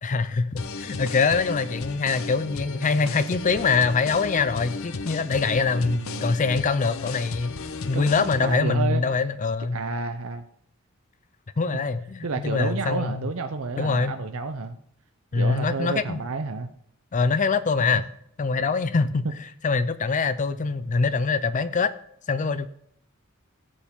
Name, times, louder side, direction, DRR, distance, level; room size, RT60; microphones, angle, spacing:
voice 1, 0.0-7.5 7.9-9.8 11.6-13.2 13.8-14.2 15.3-16.2 17.1-18.0 18.4-19.3 19.6-21.9 22.3-22.7, left 4 dB, 35° left, 13 dB, 0.5 m, -24 dB
sound 1, 0.6-8.5, left 4 dB, 70° left, 0.7 m, -35 dB
voice 2, 5.9-6.3 7.9-9.0 9.7-10.4 12.2-14.8 15.3-16.7, right 4 dB, 70° right, 7 dB, 0.7 m, -30 dB
17.5 x 7.0 x 3.7 m, 0.69 s
head